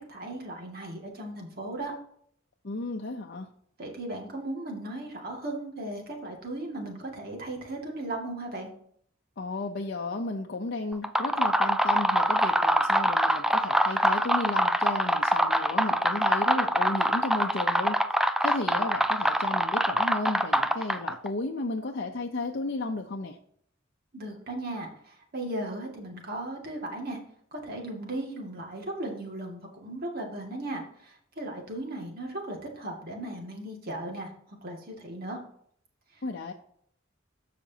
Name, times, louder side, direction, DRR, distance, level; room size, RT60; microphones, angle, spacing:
voice 1, 0.0-1.9 3.8-8.7 24.1-27.2 27.5-35.4 36.1-36.2, right 1 dB, 50° right, 1 dB, 2.1 m, -37 dB
voice 2, 2.6-3.5 9.4-18.0 18.4-23.4 36.2-36.5, left 3 dB, 55° left, 2 dB, 0.6 m, -33 dB
sound 1, 10.9-21.3, right 1 dB, 5° right, 0.3 m, -24 dB
14.0 x 5.1 x 2.8 m, 0.64 s
head